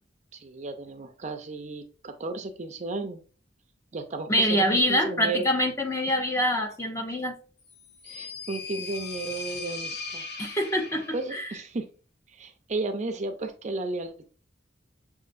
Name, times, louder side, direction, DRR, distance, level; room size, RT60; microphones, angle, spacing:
voice 1, 0.3-3.2 3.9-5.5 8.0-10.2 11.1-11.9 12.3-14.3, right 3 dB, 40° right, 0.5 m, -34 dB
voice 2, 4.3-7.3 10.4-11.5, equal, 15° left, 0.5 m, -25 dB
sound 1, 7.7-11.4, left 4 dB, 60° left, 0.8 m, -38 dB
6.4 x 2.5 x 2.5 m
head